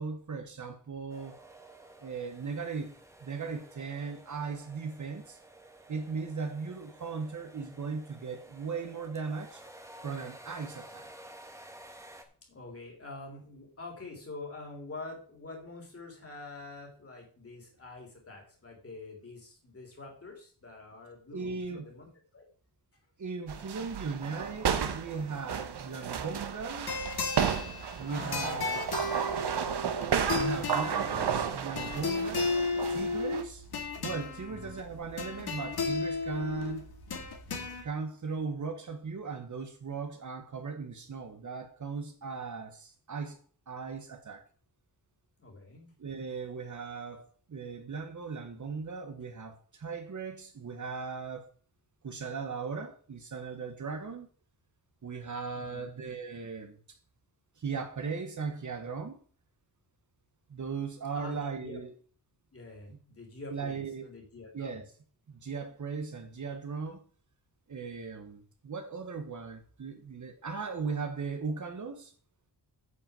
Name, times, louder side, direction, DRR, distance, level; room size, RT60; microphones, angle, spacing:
voice 1, 0.0-1.4 2.0-2.9 3.2-5.4 5.9-9.6 10.0-11.1 21.3-21.8 23.2-27.0 28.0-28.9 30.3-32.5 32.9-33.7 34.0-36.8 37.8-43.4 43.7-44.4 46.0-51.5 52.0-54.3 55.0-57.0 57.6-59.2 60.5-61.9 63.5-64.1 64.5-64.9 65.3-67.0 67.7-72.1, right 5 dB, 45° right, 1.3 m, -38 dB
sound 1, 1.1-12.2, right 1 dB, 5° right, 1.6 m, -52 dB
voice 2, 12.5-22.5 28.1-28.7 34.4-34.8 45.4-46.0 55.5-55.9 61.1-61.8 62.5-64.8, left 3 dB, 35° left, 3.8 m, -46 dB
sound 2, 23.5-33.4, right 7 dB, 70° right, 1.3 m, -33 dB
sound 3, 26.8-37.8, left 4 dB, 65° left, 2.2 m, -34 dB
9.7 x 5.6 x 7.5 m
wide cardioid pair, 170°, 41 cm